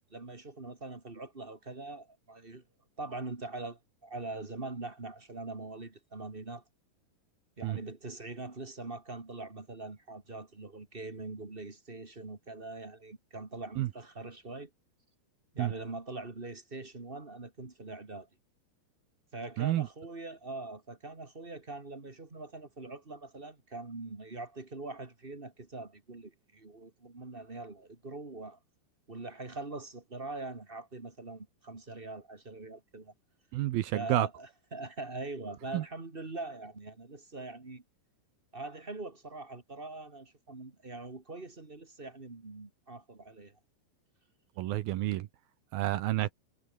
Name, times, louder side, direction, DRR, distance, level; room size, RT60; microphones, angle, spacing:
voice 1, 0.0-2.6 3.0-6.6 7.6-14.7 15.5-18.3 19.3-28.6 29.1-33.1 33.9-37.8 38.5-43.6, right 3 dB, 25° right, 1.1 m, -43 dB
voice 2, 33.5-34.3 35.7-35.8 44.6-45.3 45.7-46.3, right 15 dB, 75° right, 2.3 m, -29 dB
omnidirectional pair, 5.1 m